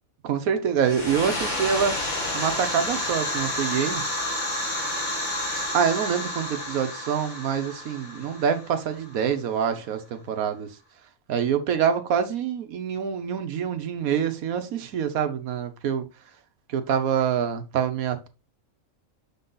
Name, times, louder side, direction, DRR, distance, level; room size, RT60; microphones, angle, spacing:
voice 1, 0.2-2.0 2.3-4.0 5.5-10.7 11.3-16.0 16.7-18.3, right 7 dB, 85° right, 1.3 m, -26 dB
sound 1, 0.8-9.3, left 1 dB, 35° left, 1.7 m, -30 dB
6.3 x 4.1 x 3.8 m
omnidirectional pair, 1.4 m